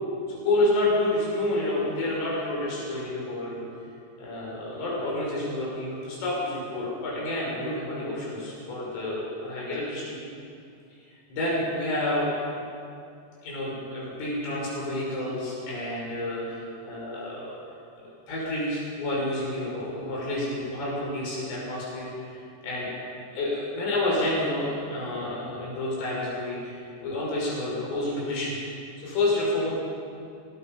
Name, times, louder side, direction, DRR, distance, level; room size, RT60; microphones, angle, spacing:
voice 1, 0.3-3.7 4.2-10.2 11.3-12.3 13.4-17.6 18.0-23.0 23.3-28.5 29.0-29.7, left 1 dB, 75° left, -5 dB, 8.5 m, -29 dB
30.0 x 19.0 x 5.5 m, 2.4 s
omnidirectional pair, 5.8 m